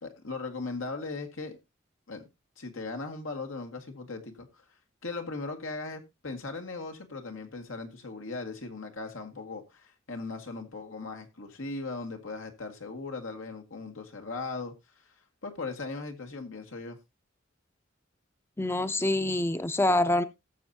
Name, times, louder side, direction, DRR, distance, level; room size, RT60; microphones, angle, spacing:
voice 1, 0.0-1.6 2.1-2.2 2.6-4.6 5.0-15.1 15.4-17.0, left 3 dB, 90° left, 2.0 m, -38 dB
voice 2, 18.6-20.2, left 1 dB, 10° left, 0.5 m, -26 dB
18.5 x 7.0 x 2.8 m
head